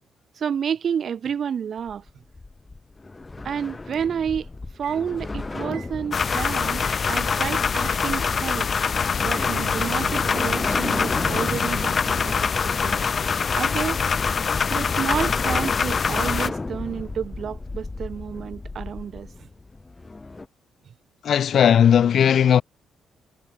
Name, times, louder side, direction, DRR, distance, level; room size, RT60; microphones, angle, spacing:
voice 1, 0.4-2.0 3.4-4.5 4.8-6.8 7.1-8.7 9.2-13.0 13.5-14.0 14.7-19.3, right 7 dB, 55° right, 1.5 m, -30 dB
sound 1, 1.8-20.5, left 3 dB, 20° left, 2.3 m, -35 dB
sound 2, 3.8-4.1 4.7-5.9 6.2-7.0 7.8-8.0 9.1-12.0, right 13 dB, 80° right, 4.3 m, -40 dB
sound 3, 6.1-16.5, left 6 dB, 40° left, 0.7 m, -24 dB
voice 2, 21.2-22.6, left 9 dB, 60° left, 1.1 m, -17 dB
cardioid pair, 90°, 0 cm